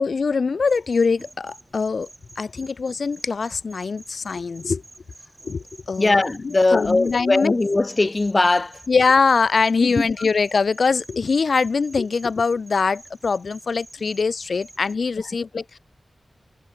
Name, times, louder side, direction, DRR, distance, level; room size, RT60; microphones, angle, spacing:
voice 1, 0.0-2.1 2.4-4.8 5.4-7.5 8.9-15.8, left 4 dB, 75° left, 0.4 m, -22 dB
sound 1, 0.7-14.9, right 2 dB, 30° right, 2.7 m, -49 dB
voice 2, 6.0-8.8 9.8-10.0, left 2 dB, 35° left, 0.8 m, -20 dB
wide cardioid pair, 80°, 0 cm